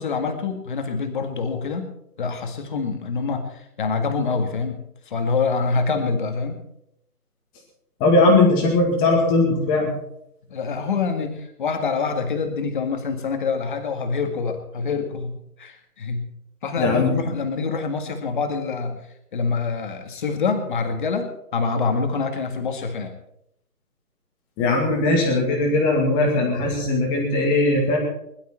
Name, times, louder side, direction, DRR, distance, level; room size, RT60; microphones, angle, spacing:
voice 1, 0.0-1.9 2.2-4.8 5.1-6.6 10.5-16.3 16.6-19.0 19.3-23.2, left 4 dB, 30° left, 6 dB, 1.9 m, -26 dB
voice 2, 8.0-9.9 16.8-17.1 24.6-28.0, left 2 dB, 10° left, 0 dB, 2.1 m, -19 dB
21.0 x 12.0 x 4.5 m, 0.76 s
hypercardioid pair, 165°, 47 cm